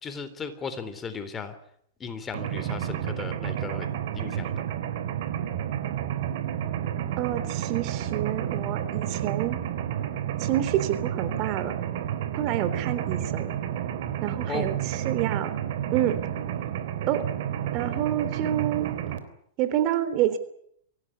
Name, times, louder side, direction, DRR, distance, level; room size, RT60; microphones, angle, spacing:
voice 1, 0.0-1.5 2.0-3.9 4.1-4.5 14.5-14.7, left 5 dB, 20° left, 10 dB, 3.7 m, -36 dB
Mechanisms, 2.3-19.2, right 10 dB, 60° right, 3.4 m, -30 dB
voice 2, 7.2-9.6 10.4-11.8 12.3-13.6 14.2-15.6 15.9-16.2 17.1-17.2 17.7-19.0 19.6-20.4, right 12 dB, 45° right, 11 dB, 3.4 m, -28 dB
24.5 x 17.5 x 9.9 m, 0.69 s
hypercardioid pair, 110°, 0 cm